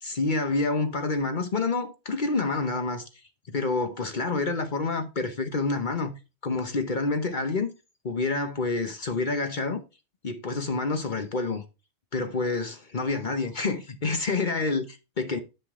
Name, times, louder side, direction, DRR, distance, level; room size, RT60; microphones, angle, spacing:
voice 1, 0.0-3.1 3.5-6.1 6.4-7.7 8.0-9.8 10.2-11.6 12.1-15.4, left 3 dB, 45° left, 1.1 m, -28 dB
10.5 x 5.7 x 3.7 m
omnidirectional pair, 1.1 m